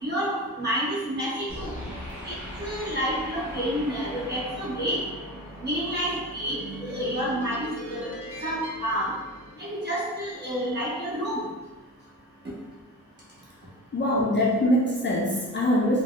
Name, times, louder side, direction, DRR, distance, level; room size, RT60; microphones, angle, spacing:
voice 1, 0.0-1.8 2.2-5.0 5.6-8.1 8.4-9.1 9.6-11.4, equal, 30° right, -8 dB, 1.1 m, -29 dB
sound 1, 1.5-10.0, equal, 5° right, 0.8 m, -39 dB
voice 2, 13.9-16.0, left 1 dB, 35° left, -4 dB, 0.4 m, -23 dB
4.0 x 2.1 x 2.4 m, 1.2 s
wide cardioid pair, 170°, 34 cm